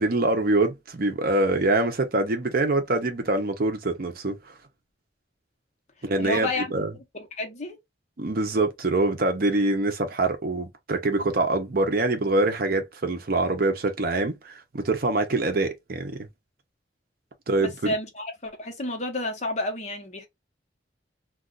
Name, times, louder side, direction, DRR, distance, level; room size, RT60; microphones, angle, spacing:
voice 1, 0.0-4.4 6.0-6.9 8.2-16.3 17.5-17.9, right 2 dB, 55° right, 0.7 m, -24 dB
voice 2, 6.2-6.7 7.1-7.8 17.6-20.3, left 2 dB, 40° left, 0.9 m, -30 dB
2.4 x 2.3 x 3.7 m
head